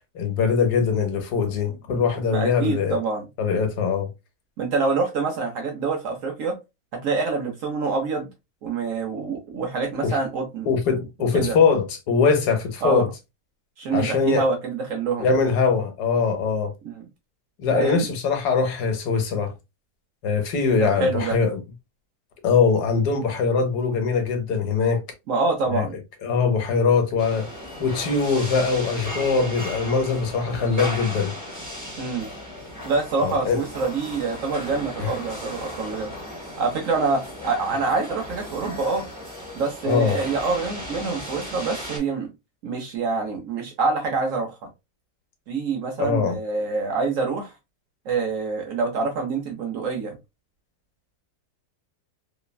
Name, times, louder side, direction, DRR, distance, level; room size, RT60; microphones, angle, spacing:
voice 1, 0.1-3.0 3.4-4.1 10.0-10.2 10.7-13.1 13.9-14.4 15.2-16.7 17.6-19.5 20.2-21.6 22.4-25.0 25.7-25.9 26.2-27.5 27.8-31.3 33.2-33.6 35.0-35.1 39.9-40.2 46.0-46.4, left 5 dB, 75° left, 1.3 m, -22 dB
voice 2, 2.3-3.3 4.6-6.6 6.9-8.3 8.6-10.7 11.3-11.6 12.8-13.0 13.8-15.3 16.8-17.0 17.7-18.1 20.8-21.4 25.3-25.9 32.0-32.3 32.8-36.1 36.6-39.1 39.6-42.3 42.6-44.6 45.5-47.5 48.1-50.2, right 4 dB, 65° right, 0.9 m, -26 dB
sound 1, 27.2-42.0, equal, 15° right, 0.7 m, -36 dB
3.2 x 2.1 x 2.2 m
omnidirectional pair, 1.8 m